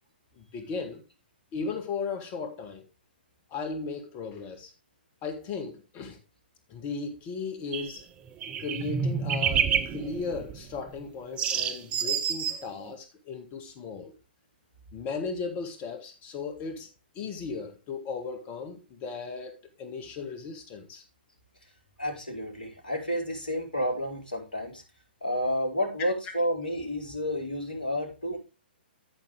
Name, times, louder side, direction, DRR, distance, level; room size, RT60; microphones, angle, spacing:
voice 1, 0.4-1.0 1.5-2.9 3.5-4.7 5.2-6.2 6.7-8.0 8.6-14.1 14.9-16.9 17.1-21.0, left 4 dB, 25° left, 2.2 m, -36 dB
sound 1, 7.7-8.0 8.3-11.0 11.4-12.9, right 7 dB, 20° right, 0.9 m, -28 dB
voice 2, 22.0-24.8 25.2-28.4, equal, 65° left, 4.6 m, -30 dB
14.5 x 5.4 x 3.6 m
figure-of-eight pair, 120°, 6 cm